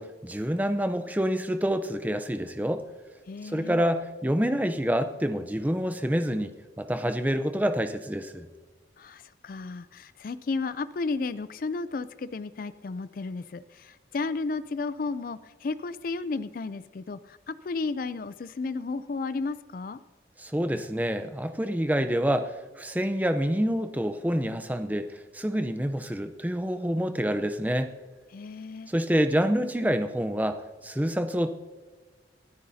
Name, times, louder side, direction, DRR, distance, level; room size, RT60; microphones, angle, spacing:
voice 1, 0.0-2.8 3.4-8.5 20.4-27.9 28.9-31.5, equal, 10° right, 8 dB, 0.6 m, -27 dB
voice 2, 3.3-3.8 9.0-20.0 28.3-28.9, left 3 dB, 50° left, 14 dB, 0.4 m, -33 dB
27.5 x 9.6 x 2.7 m, 1.4 s
head